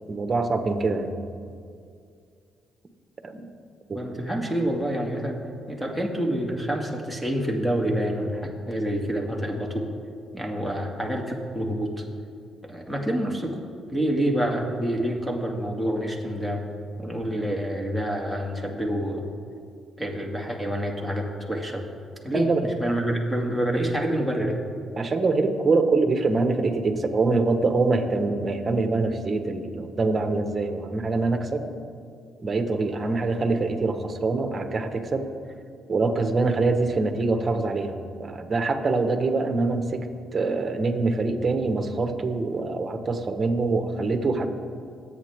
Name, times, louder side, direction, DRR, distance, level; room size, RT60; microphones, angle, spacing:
voice 1, 0.1-1.1 3.2-3.5 3.9-4.1 22.3-22.7 24.9-31.7 32.4-35.3 35.9-40.0 40.3-44.5, right 3 dB, 35° right, 6 dB, 1.4 m, -24 dB
voice 2, 3.9-5.4 5.7-9.9 10.3-12.0 12.6-13.6 13.9-16.6 17.0-19.3 20.0-21.8 22.2-24.6, equal, 5° left, 1 dB, 2.3 m, -27 dB
25.5 x 8.7 x 3.7 m, 2.3 s
cardioid pair, 90°, 0 cm